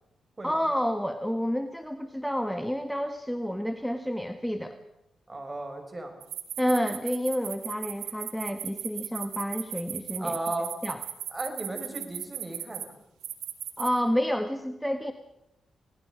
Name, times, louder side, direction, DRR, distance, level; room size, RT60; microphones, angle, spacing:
voice 1, 0.4-4.8 6.6-10.4 10.8-11.0 13.8-15.1, equal, ahead, 7 dB, 1.6 m, -29 dB
voice 2, 5.3-6.1 10.2-10.7 11.3-13.0, right 2 dB, 30° right, 5 dB, 5.8 m, -35 dB
sound 1, 6.2-12.8 13.2-13.9, right 11 dB, 90° right, 1.6 m, -36 dB
29.0 x 18.5 x 5.2 m, 0.81 s
supercardioid pair, 55°, 0 cm